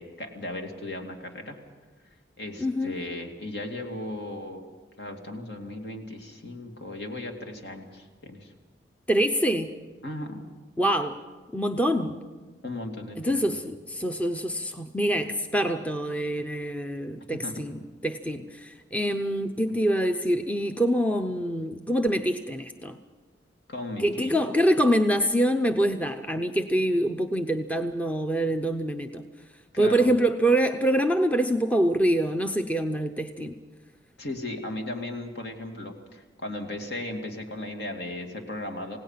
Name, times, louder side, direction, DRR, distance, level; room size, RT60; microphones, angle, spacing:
voice 1, 0.0-1.6 2.4-4.7 5.0-8.5 10.0-10.4 12.6-13.6 17.3-17.7 23.7-24.3 29.7-30.1 34.2-39.0, left 1 dB, 65° left, 3 dB, 2.6 m, -36 dB
voice 2, 2.6-3.0 9.1-9.7 10.8-11.2 11.5-12.2 13.2-23.0 24.0-29.2 29.8-33.5, right 1 dB, 10° left, 6 dB, 0.6 m, -25 dB
28.0 x 17.5 x 5.8 m, 1.3 s
head